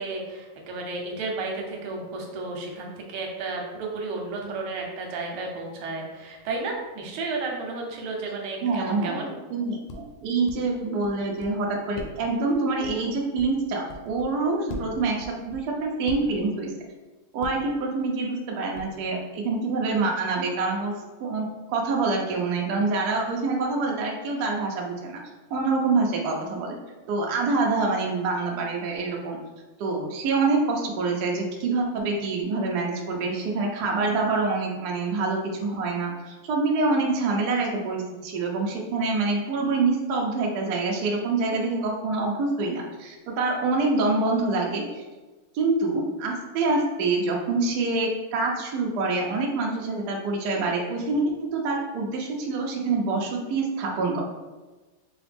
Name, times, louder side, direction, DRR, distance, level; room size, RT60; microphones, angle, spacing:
voice 1, 0.0-9.4, right 3 dB, 90° right, 0 dB, 1.6 m, -33 dB
sound 1, 2.3-2.4 6.5-6.7 9.0-9.3 9.9-10.6 11.0-11.5 11.9-14.3 14.7-16.5 17.4-17.8 18.7-19.1, left 2 dB, 80° left, 1.4 m, -41 dB
voice 2, 8.6-16.7 17.3-20.9 21.2-25.2 25.5-26.8 27.1-29.4 29.8-45.0 45.5-54.2, right 3 dB, 65° right, 0 dB, 1.0 m, -26 dB
4.9 x 2.3 x 3.3 m, 1.2 s
omnidirectional pair, 2.3 m